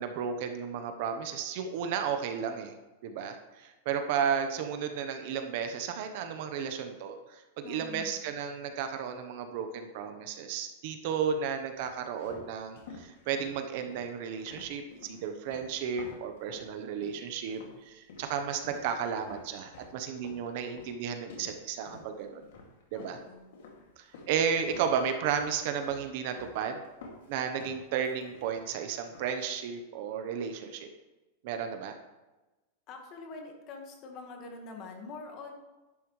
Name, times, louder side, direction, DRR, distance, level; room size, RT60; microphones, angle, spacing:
voice 1, 0.0-2.7 3.0-22.4 22.9-23.2 24.0-26.8 27.3-30.9 31.4-31.9, right 7 dB, 45° right, 6 dB, 0.9 m, -33 dB
voice 2, 7.6-8.2 22.9-23.5 32.9-35.5, left 4 dB, 25° left, 3 dB, 1.5 m, -45 dB
sound 1, 11.8-16.7 17.0-17.8 18.1-24.4 24.7-25.5 25.8-26.6 26.8-28.7 29.0-29.4, left 3 dB, 65° left, 2.3 m, -50 dB
11.0 x 10.0 x 3.2 m, 1.1 s
supercardioid pair, 180°, 0 cm